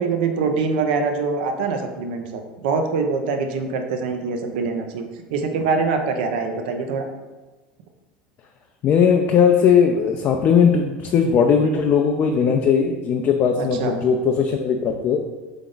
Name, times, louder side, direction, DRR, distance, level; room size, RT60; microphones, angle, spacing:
voice 1, 0.0-7.0 13.6-14.0, right 4 dB, 75° right, 5 dB, 0.6 m, -24 dB
voice 2, 8.8-15.2, left 6 dB, 45° left, 2 dB, 0.4 m, -18 dB
3.8 x 3.5 x 3.8 m, 1.2 s
hypercardioid pair, 95°, 5 cm